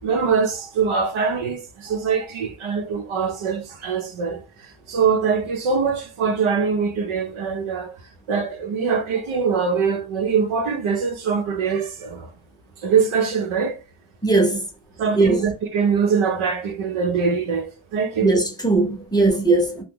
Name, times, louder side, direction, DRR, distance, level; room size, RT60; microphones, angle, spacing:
voice 1, 0.0-7.9 8.3-12.3 12.8-13.8 15.0-18.3, right 5 dB, 85° right, 0.8 m, -23 dB
voice 2, 14.2-14.7 15.1-15.4 18.2-19.8, right 3 dB, 10° left, 0.6 m, -19 dB
2.9 x 2.1 x 3.5 m
wide cardioid pair, 145°, 48 cm